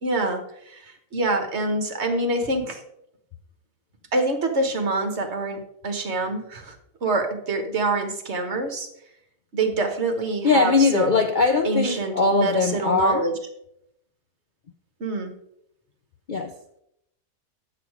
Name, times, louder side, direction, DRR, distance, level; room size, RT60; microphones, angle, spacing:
voice 1, 0.0-0.4 0.7-0.8 1.1-2.8 4.1-6.7 7.0-8.9 9.5-11.2 11.6-13.3 15.0-15.3, right 2 dB, 45° right, 5 dB, 1.4 m, -25 dB
voice 2, 10.4-13.2 16.3-16.5, left 4 dB, 85° left, 6 dB, 0.4 m, -21 dB
8.3 x 7.2 x 4.7 m, 0.77 s
omnidirectional pair, 1.7 m